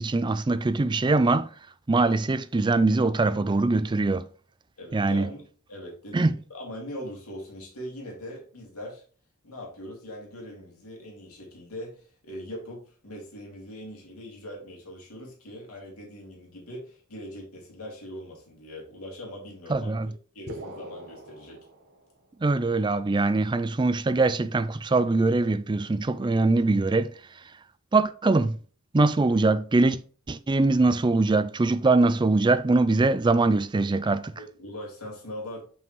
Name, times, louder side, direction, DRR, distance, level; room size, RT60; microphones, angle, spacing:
voice 1, 0.0-1.5 1.9-4.3 4.9-5.3 6.1-6.3 19.7-20.1 22.4-27.1 27.9-28.6 28.9-30.0 30.3-34.3, right 3 dB, 20° right, 0.4 m, -22 dB
voice 2, 4.8-9.0 9.4-19.9 20.3-21.7 34.4-35.6, equal, 85° left, 2.5 m, -41 dB
sound 1, 20.5-22.4, right 1 dB, 50° right, 1.2 m, -42 dB
7.2 x 5.5 x 3.1 m
head